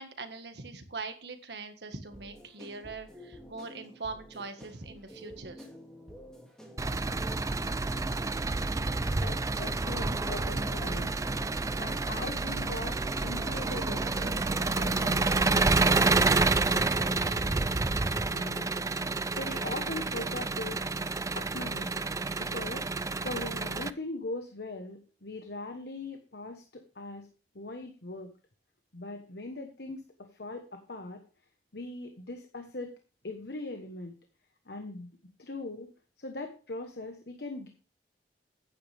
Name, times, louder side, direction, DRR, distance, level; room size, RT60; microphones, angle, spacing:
voice 1, 0.0-5.7, right 3 dB, 70° right, 7 dB, 1.6 m, -42 dB
sound 1, 2.1-18.1, equal, 5° left, 2.4 m, -50 dB
Engine, 6.8-23.9, right 3 dB, 20° right, 0.4 m, -29 dB
voice 2, 9.1-11.2 11.8-17.8 18.1-18.7 19.3-20.8 21.3-21.9 22.4-27.3 27.5-28.3 28.9-31.2 31.7-32.9 33.2-34.1 34.6-35.1 35.4-35.9 36.2-37.7, left 2 dB, 65° left, 5 dB, 1.2 m, -41 dB
Wind instrument woodwind instrument, 12.8-15.5 16.0-19.2, equal, 25° left, 2.2 m, -51 dB
10.5 x 9.6 x 3.5 m, 0.36 s
head